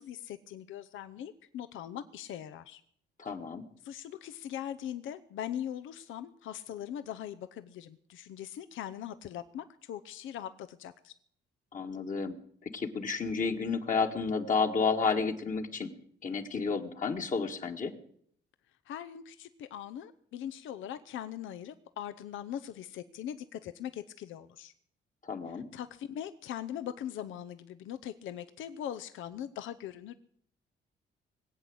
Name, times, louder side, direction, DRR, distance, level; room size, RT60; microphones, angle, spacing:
voice 1, 0.0-2.8 3.3-3.4 3.8-11.1 18.8-24.7 25.5-30.1, left 10 dB, 80° left, 11 dB, 0.7 m, -41 dB
voice 2, 3.2-3.7 11.7-12.4 12.6-15.9 16.2-17.9 25.2-25.7, left 4 dB, 40° left, 4 dB, 1.8 m, -31 dB
20.5 x 8.5 x 7.9 m, 0.65 s
cardioid pair, 90°, 20 cm